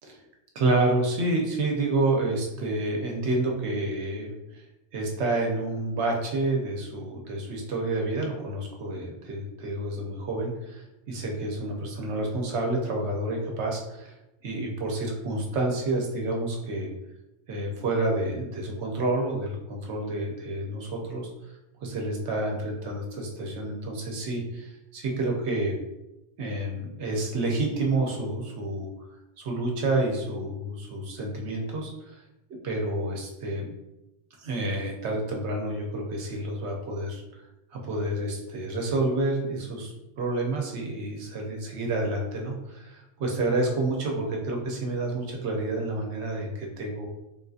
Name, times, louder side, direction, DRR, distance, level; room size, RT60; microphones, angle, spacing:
voice 1, 0.5-4.7 4.9-14.2 14.4-16.9 17.5-21.5 21.8-25.7 26.4-28.9 29.4-32.2 32.6-33.7 34.4-37.4 37.7-47.1, right 2 dB, 75° right, 1 dB, 1.0 m, -29 dB
3.5 x 2.6 x 2.4 m, 0.93 s
omnidirectional pair, 1.2 m